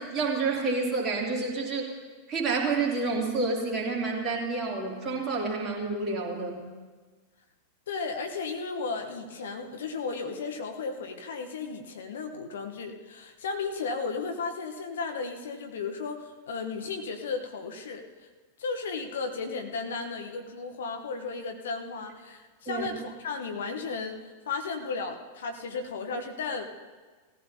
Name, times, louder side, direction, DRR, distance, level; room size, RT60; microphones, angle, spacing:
voice 1, 0.0-1.9 2.3-6.6 22.7-22.9, right 3 dB, 25° right, -2 dB, 3.0 m, -29 dB
voice 2, 7.9-18.3 18.6-26.7, left 4 dB, 60° left, 4 dB, 1.0 m, -34 dB
18.5 x 14.5 x 2.8 m, 1.4 s
figure-of-eight pair, 90°, 0 cm